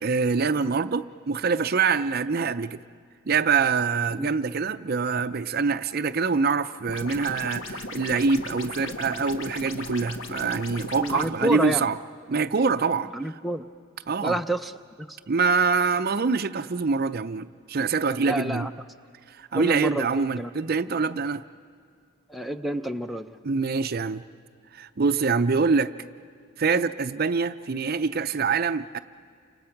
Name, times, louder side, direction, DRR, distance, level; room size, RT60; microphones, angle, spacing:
voice 1, 0.0-2.8 3.3-12.0 12.3-13.1 14.1-14.4 15.3-18.7 19.4-21.4 23.4-24.2 24.7-25.9 26.6-29.0, right 5 dB, 50° right, 12 dB, 0.5 m, -25 dB
sound 1, 6.9-11.3, left 2 dB, 70° left, 1.5 m, -37 dB
voice 2, 11.0-11.9 13.1-13.6 14.2-14.7 15.1-15.2 18.3-18.7 19.5-20.5 22.3-23.4, right 1 dB, ahead, 4 dB, 0.6 m, -29 dB
29.5 x 27.0 x 5.9 m, 2.4 s
head